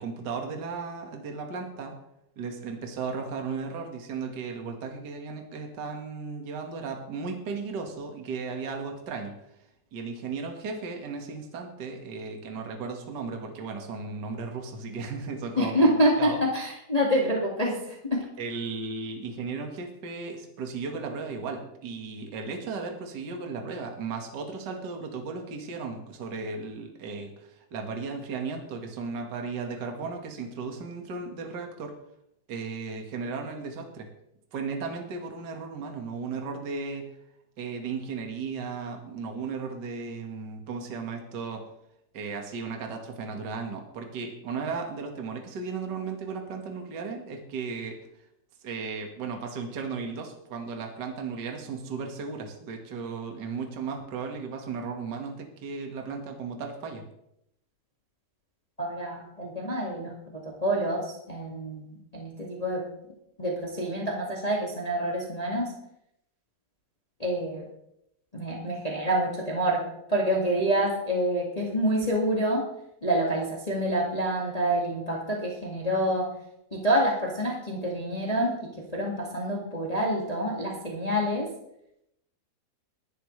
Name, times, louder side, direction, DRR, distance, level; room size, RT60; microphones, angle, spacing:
voice 1, 0.0-1.9 2.3-9.3 9.9-16.4 18.4-31.9 32.5-34.1 34.5-37.1 37.6-41.6 42.1-48.0 48.6-57.0, right 4 dB, 55° right, 3 dB, 1.1 m, -35 dB
voice 2, 15.6-18.2 58.8-62.9 63.4-65.7 67.2-67.7 68.3-72.6 73.0-76.3 76.7-81.5, equal, 75° left, -2 dB, 0.3 m, -27 dB
21.0 x 11.5 x 3.3 m, 0.79 s
omnidirectional pair, 4.8 m